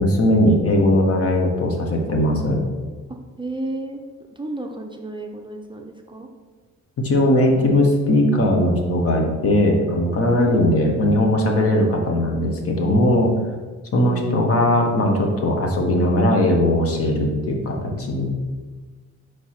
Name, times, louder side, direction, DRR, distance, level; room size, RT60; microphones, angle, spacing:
voice 1, 0.0-2.6 7.0-13.3 13.9-18.3, left 1 dB, 50° left, 1 dB, 1.2 m, -19 dB
voice 2, 3.1-4.0 4.3-6.3 10.4-11.0 14.0-14.5, right 2 dB, 15° right, 1 dB, 0.5 m, -33 dB
4.8 x 4.5 x 4.4 m, 1.4 s
cardioid pair, 90°, 30 cm